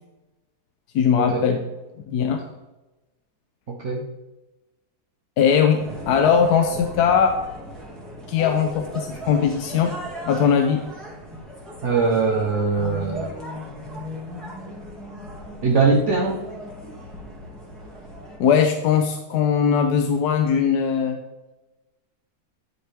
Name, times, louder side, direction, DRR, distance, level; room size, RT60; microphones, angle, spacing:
voice 1, 0.9-1.6 2.1-2.4 5.4-7.4 8.3-9.9 10.3-10.8 18.4-21.2, left 7 dB, 90° left, 5 dB, 1.2 m, -20 dB
voice 2, 3.7-4.0 11.8-13.3 15.6-16.4, right 4 dB, 55° right, -1 dB, 1.1 m, -21 dB
sound 1, 5.8-18.4, equal, ahead, 1.8 m, -37 dB
10.0 x 5.3 x 3.4 m, 1.1 s
omnidirectional pair, 1.7 m